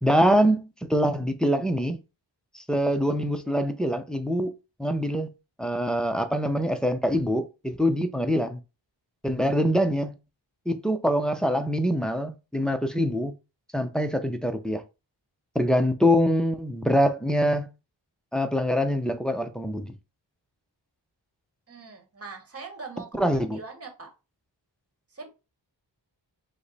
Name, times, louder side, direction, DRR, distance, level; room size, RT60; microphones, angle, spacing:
voice 1, 0.0-2.0 2.5-4.5 4.8-5.3 5.6-8.6 9.2-10.1 10.7-13.3 13.7-14.8 15.5-17.7 18.3-19.9 23.1-23.6, equal, ahead, 0.5 m, -24 dB
voice 2, 21.7-23.1 23.5-24.1 25.1-25.3, right 4 dB, 30° right, 1.1 m, -41 dB
5.1 x 2.1 x 4.0 m
wide cardioid pair, 90°, 45 cm